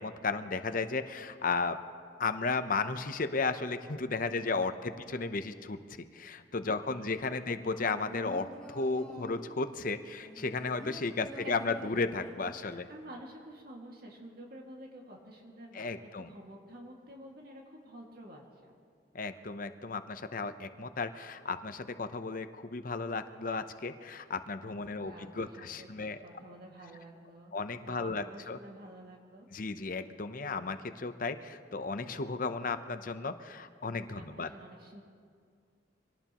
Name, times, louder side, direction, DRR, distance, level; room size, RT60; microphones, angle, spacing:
voice 1, 0.0-1.8 2.2-5.8 6.1-12.9 15.7-16.3 19.1-26.2 27.5-28.6 29.5-34.5, left 4 dB, 50° left, 10 dB, 0.7 m, -34 dB
voice 2, 6.7-7.5 11.2-11.6 12.6-15.9 16.2-18.7 24.9-27.5 27.9-29.5 34.2-35.0, right 1 dB, 55° right, -1 dB, 2.1 m, -50 dB
sound 1, 7.7-9.6 10.2-12.6 12.9-13.0, equal, 5° left, 2.3 m, -47 dB
25.5 x 18.0 x 3.0 m, 2.1 s
head